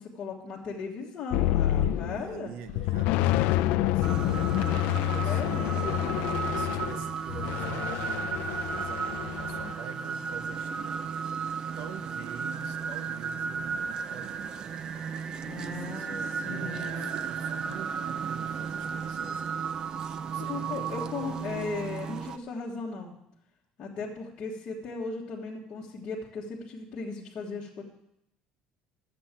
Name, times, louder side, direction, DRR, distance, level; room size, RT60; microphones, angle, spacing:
voice 1, 0.0-2.5 5.2-6.2 15.4-16.1 16.4-17.2 20.4-23.2 23.8-27.8, left 4 dB, 30° left, -6 dB, 1.5 m, -37 dB
sound 1, 1.3-2.3 2.7-9.7, left 14 dB, 65° left, 0.4 m, -28 dB
voice 2, 1.5-4.4 4.7-6.0 6.5-11.1 11.8-14.6 15.4-19.6 20.3-22.1, right 7 dB, 80° right, 10 dB, 1.0 m, -46 dB
sound 2, 4.0-22.4, right 6 dB, 25° right, 0.5 m, -34 dB
12.0 x 7.8 x 7.4 m, 0.80 s
cardioid pair, 175°, 3 cm